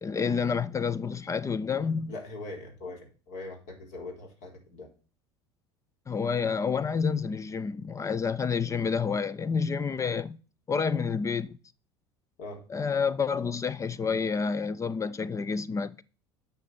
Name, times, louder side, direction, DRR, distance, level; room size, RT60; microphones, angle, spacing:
voice 1, 0.0-2.1 6.1-10.4 10.7-11.6 12.7-16.0, left 5 dB, 20° left, 0.5 m, -29 dB
voice 2, 2.1-4.9 12.4-12.6, left 2 dB, 60° left, 4.1 m, -41 dB
9.3 x 5.8 x 7.0 m
figure-of-eight pair, 70°, 14 cm